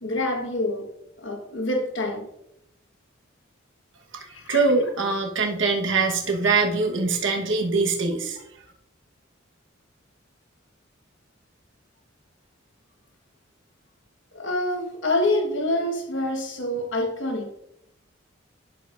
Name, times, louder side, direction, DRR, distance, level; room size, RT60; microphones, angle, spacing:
voice 1, 0.0-2.3 4.3-4.6 14.3-17.5, left 1 dB, 65° left, 1.4 m, -27 dB
voice 2, 4.1-8.4, right 4 dB, 70° right, 1.2 m, -23 dB
11.0 x 7.0 x 2.5 m
head